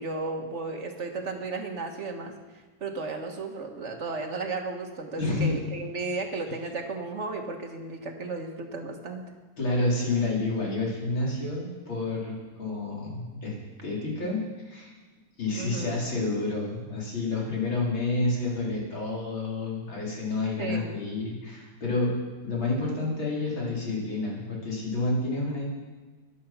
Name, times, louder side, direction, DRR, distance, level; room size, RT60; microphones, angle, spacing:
voice 1, 0.0-2.3 2.8-9.3 15.6-16.0 20.6-21.0, right 3 dB, 40° right, 3 dB, 1.5 m, -34 dB
voice 2, 5.2-5.5 9.6-13.5 13.8-14.9 15.4-22.1 22.4-25.6, left 2 dB, 85° left, -4 dB, 4.6 m, -29 dB
15.0 x 11.0 x 5.8 m, 1.3 s
omnidirectional pair, 2.1 m